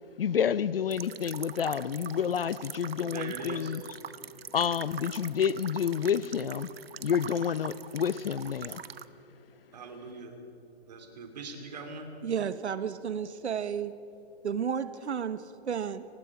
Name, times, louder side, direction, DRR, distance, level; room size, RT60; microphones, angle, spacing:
voice 1, 0.2-3.8 4.5-6.7 7.0-8.8, left 8 dB, 60° left, 0.6 m, -29 dB
sound 1, 0.9-9.1, right 8 dB, 65° right, 0.8 m, -43 dB
voice 2, 3.1-3.7 9.7-10.4 10.9-12.1, right 4 dB, 40° right, 3.0 m, -41 dB
voice 3, 12.2-13.9 14.4-16.1, right 7 dB, 90° right, 1.1 m, -32 dB
29.5 x 19.5 x 4.8 m
hypercardioid pair, 175°, 33 cm